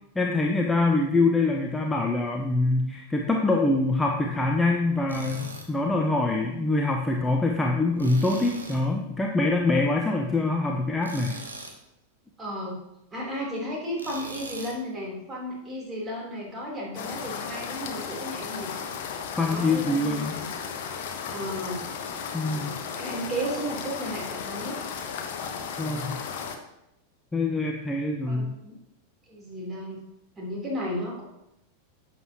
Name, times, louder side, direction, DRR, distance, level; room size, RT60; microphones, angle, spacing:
voice 1, 0.2-11.4 19.4-20.4 22.3-22.7 25.8-26.2 27.3-28.5, left 2 dB, 10° left, 1 dB, 0.9 m, -24 dB
Tools, 5.1-5.7 8.0-8.9 11.0-11.8 14.0-14.8, right 2 dB, 80° right, 1.4 m, -40 dB
voice 2, 12.4-12.8 13.1-18.7 19.5-20.5 21.3-21.9 22.5-24.8 28.3-28.8 29.3-30.0 30.4-31.2, equal, 20° right, -3 dB, 3.6 m, -34 dB
sound 1, 16.9-26.6, left 6 dB, 50° left, 1.0 m, -35 dB
11.0 x 7.8 x 3.0 m, 0.86 s
figure-of-eight pair, 90°, 0 cm